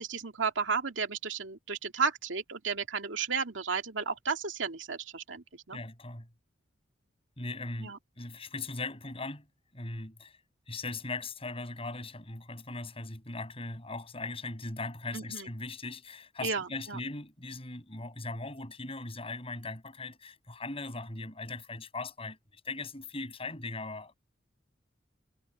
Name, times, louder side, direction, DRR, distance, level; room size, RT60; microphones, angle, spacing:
voice 1, 0.0-5.8 7.8-8.0 15.1-15.5 16.4-17.0, right 5 dB, 85° right, 2.3 m, -33 dB
voice 2, 5.7-6.3 7.4-9.5 9.7-10.4 10.7-24.1, left 3 dB, 30° left, 7.2 m, -39 dB
head